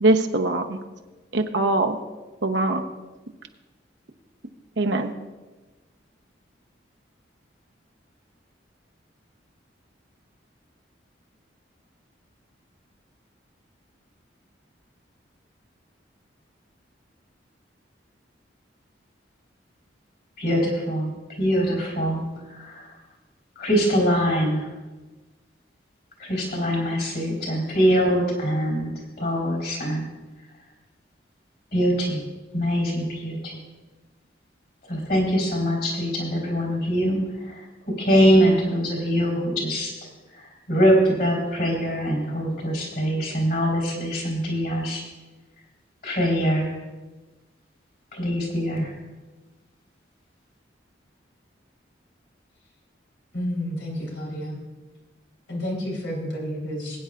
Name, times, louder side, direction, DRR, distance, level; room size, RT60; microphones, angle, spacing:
voice 1, 0.0-0.8 1.3-2.0 2.4-2.8 4.8-5.1, right 2 dB, 75° right, 4 dB, 0.9 m, -22 dB
voice 2, 20.4-21.1 21.4-22.2 22.5-22.9 23.6-24.7 26.2-28.9 29.2-30.1 31.7-32.2 32.5-33.6 34.9-39.9 40.3-45.0 46.0-46.7 48.1-48.9, equal, 55° left, 0 dB, 4.0 m, -23 dB
voice 3, 53.3-54.6 55.5-57.0, equal, 90° left, -2 dB, 4.0 m, -30 dB
21.0 x 9.5 x 2.5 m, 1.2 s
head